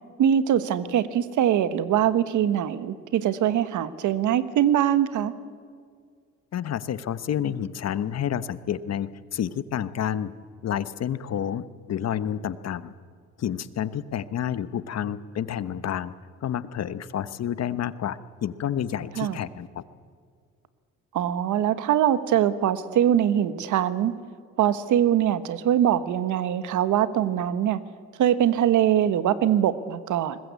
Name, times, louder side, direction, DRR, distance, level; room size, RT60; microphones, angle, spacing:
voice 1, 0.2-5.3 19.2-19.4 21.1-24.1 24.6-27.8 28.2-30.4, right 10 dB, 80° right, 14 dB, 1.2 m, -22 dB
voice 2, 6.5-10.3 10.6-12.9 13.4-16.1 16.4-19.8, left 9 dB, 60° left, 15 dB, 1.0 m, -29 dB
21.5 x 20.5 x 8.3 m, 2.1 s
cardioid pair, 90°, 30 cm